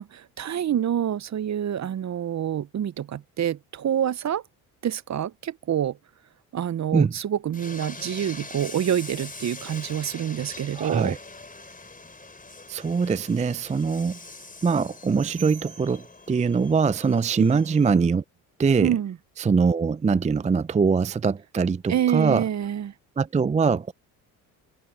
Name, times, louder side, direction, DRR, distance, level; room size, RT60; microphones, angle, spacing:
voice 1, 0.0-4.4 4.8-6.0 6.5-11.2 17.4-17.5 18.8-19.2 21.9-22.9, right 10 dB, 40° right, 0.9 m, -27 dB
Train, 7.5-17.9, left 2 dB, 20° left, 5.0 m, -43 dB
voice 2, 10.7-11.2 12.7-14.2 14.6-18.2 18.6-18.9 19.4-22.4 23.2-23.9, right 5 dB, 15° right, 0.5 m, -22 dB
hypercardioid pair, 60°, 44 cm